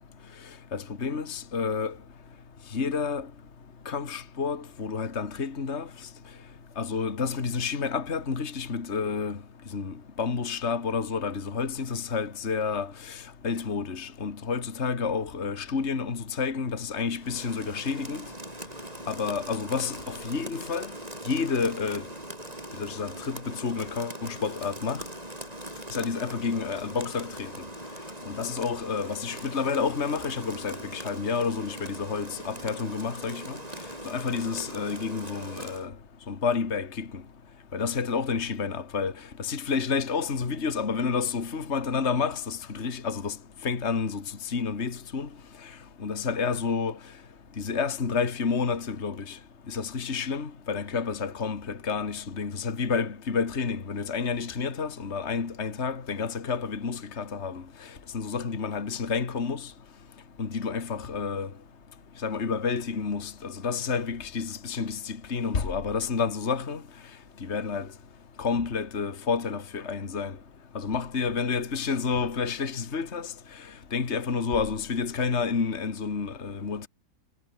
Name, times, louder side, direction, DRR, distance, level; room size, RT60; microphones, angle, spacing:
voice 1, 0.7-1.9 2.7-3.3 3.9-5.9 6.8-9.4 9.7-18.3 19.1-20.9 21.3-22.0 22.7-25.0 25.9-27.5 28.3-33.6 34.1-35.9 36.3-37.1 37.7-39.1 39.4-43.4 43.6-45.3 46.0-47.0 47.6-49.4 49.7-57.6 58.1-59.7 60.4-61.5 62.2-66.8 67.4-67.9 68.4-70.4 70.7-73.3 73.9-76.9, left 5 dB, 45° left, 2.2 m, -30 dB
Rain, 17.2-35.9, right 1 dB, 20° right, 5.4 m, -41 dB
omnidirectional pair, 1.7 m